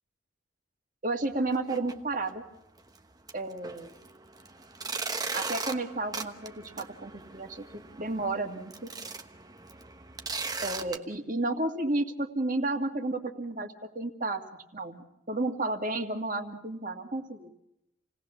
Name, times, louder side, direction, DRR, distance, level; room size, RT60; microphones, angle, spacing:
voice 1, 1.0-2.4 3.3-3.9 5.3-8.9 10.6-14.4 14.7-17.5, right 2 dB, 40° right, 5 dB, 2.2 m, -32 dB
sound 1, 1.5-1.9 2.3-2.4 2.9-3.0 3.3-11.0, right 4 dB, 20° right, 1.1 m, -38 dB
28.5 x 18.5 x 7.1 m, 0.87 s
head